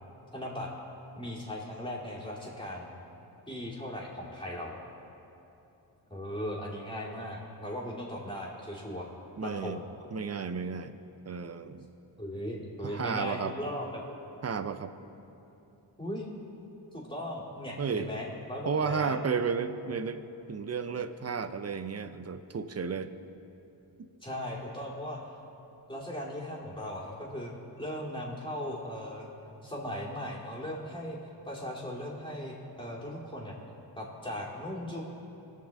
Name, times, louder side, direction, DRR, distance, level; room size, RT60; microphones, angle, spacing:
voice 1, 0.3-0.7 1.2-2.9 3.5-4.7 6.1-9.1 9.4-9.8 12.2-14.1 16.0-16.3 16.9-19.2 24.2-25.2 25.9-29.3 29.6-31.2 31.5-33.5 34.0-35.0, equal, 10° left, -5 dB, 2.6 m, -38 dB
voice 2, 9.4-9.8 10.1-11.0 11.3-11.9 12.8-13.6 14.4-14.9 17.8-18.1 18.7-20.2 20.5-23.1, right 5 dB, 35° right, 11 dB, 0.6 m, -33 dB
19.5 x 6.5 x 3.5 m, 3.0 s
cardioid pair, 55°, 46 cm